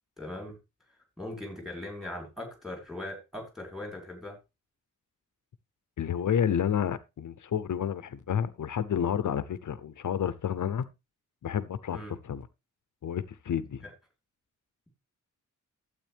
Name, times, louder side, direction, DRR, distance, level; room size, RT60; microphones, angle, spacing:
voice 1, 0.2-0.6 1.2-4.4 11.9-12.2 13.8-13.9, left 1 dB, ahead, 3.8 m, -40 dB
voice 2, 6.0-10.8 11.4-12.5 13.0-13.8, left 8 dB, 70° left, 0.7 m, -30 dB
12.0 x 8.1 x 3.4 m
wide cardioid pair, 175°, 32 cm